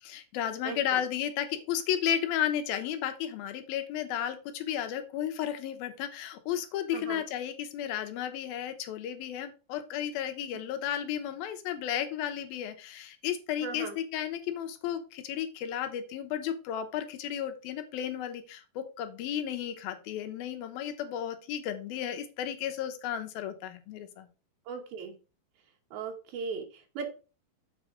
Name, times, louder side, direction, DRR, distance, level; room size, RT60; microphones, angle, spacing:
voice 1, 0.0-24.3, left 10 dB, 85° left, 8 dB, 2.8 m, -33 dB
voice 2, 0.6-1.0 6.9-7.2 13.6-13.9 24.7-25.1 25.9-27.1, right 5 dB, 85° right, 2 dB, 3.1 m, -38 dB
7.4 x 5.0 x 4.8 m, 0.34 s
omnidirectional pair, 4.2 m